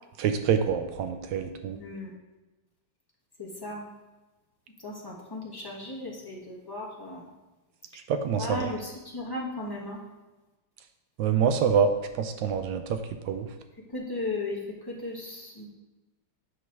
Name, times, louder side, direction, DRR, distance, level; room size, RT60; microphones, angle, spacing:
voice 1, 0.2-1.8 8.1-8.7 11.2-11.9 12.2-13.0 13.3-13.5, right 7 dB, 80° right, 8 dB, 1.2 m, -26 dB
voice 2, 1.7-2.1 3.4-3.8 4.8-7.2 8.4-10.0 13.9-15.7, left 2 dB, 15° left, -4 dB, 1.0 m, -36 dB
7.9 x 3.1 x 5.9 m, 1.1 s
omnidirectional pair, 2.0 m